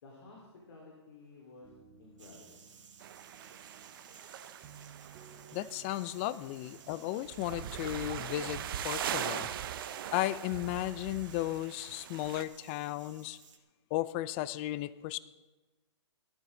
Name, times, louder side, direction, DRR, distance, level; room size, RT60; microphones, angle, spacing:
voice 1, 0.0-1.7 2.0-2.6 6.6-7.1 13.2-13.3, left 3 dB, 60° left, -2 dB, 4.1 m, -54 dB
sound 1, 1.6-8.9, right 7 dB, 25° right, 1.3 m, -58 dB
sound 2, 2.2-13.6, right 6 dB, 85° right, 1.9 m, -58 dB
sound 3, 3.0-12.4, right 10 dB, 50° right, 0.8 m, -41 dB
voice 2, 5.5-9.5 10.1-13.4 13.9-15.2, left 15 dB, 25° left, 17 dB, 0.4 m, -35 dB
18.0 x 13.0 x 3.8 m, 1.2 s
hypercardioid pair, 150°, 15 cm